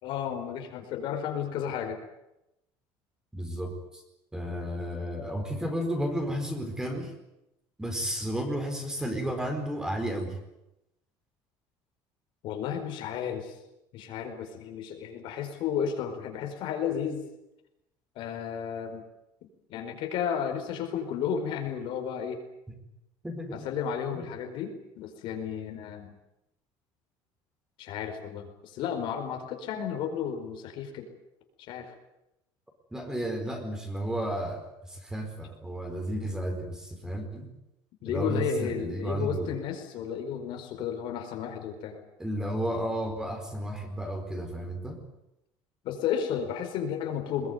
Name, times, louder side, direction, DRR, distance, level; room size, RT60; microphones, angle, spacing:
voice 1, 0.0-2.0 12.4-13.5 13.9-17.2 18.1-19.0 19.7-22.4 23.6-26.1 27.8-31.1 31.6-31.9 38.0-42.0 45.8-47.5, left 8 dB, 65° left, 5 dB, 4.8 m, -33 dB
voice 2, 3.3-4.0 4.3-7.1 7.8-10.4 22.7-22.8 23.2-23.6 24.1-24.3 32.9-37.5 38.1-39.6 42.2-45.0, equal, 5° right, 5 dB, 4.6 m, -33 dB
21.5 x 21.0 x 9.5 m, 0.88 s
cardioid pair, 145°, 9 cm